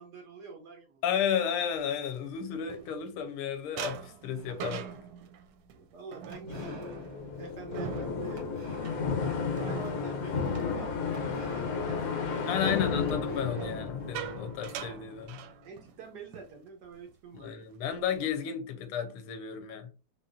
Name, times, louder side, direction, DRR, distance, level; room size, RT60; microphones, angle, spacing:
voice 1, 0.0-1.0 5.7-6.9 7.4-8.4 9.2-12.9 15.6-17.5, right 4 dB, 70° right, 1.0 m, -47 dB
voice 2, 1.0-4.9 12.5-15.4 17.3-19.9, left 8 dB, 90° left, 1.6 m, -33 dB
sound 1, 1.9-3.3 3.8-11.6 11.9-12.3 13.4-16.0 16.3-16.5 16.9-17.1 17.6-18.3, right 8 dB, 90° right, 1.5 m, -44 dB
sound 2, 4.3-5.1 6.3-9.4 9.8-10.1 11.1-12.8 13.1-14.4, right 2 dB, 55° right, 1.2 m, -50 dB
sound 3, 6.5-15.3, left 5 dB, 65° left, 0.8 m, -33 dB
4.2 x 3.3 x 2.5 m
omnidirectional pair, 2.4 m